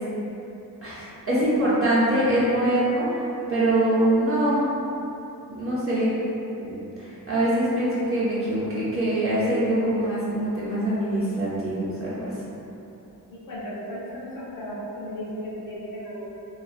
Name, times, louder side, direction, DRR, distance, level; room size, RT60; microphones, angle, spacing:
voice 1, 0.8-4.6 5.5-6.1 6.6-12.3, right 1 dB, 35° right, -11 dB, 0.7 m, -24 dB
voice 2, 13.3-16.3, equal, 60° left, -8 dB, 0.6 m, -35 dB
2.4 x 2.2 x 2.4 m, 2.9 s
wide cardioid pair, 85°, 38 cm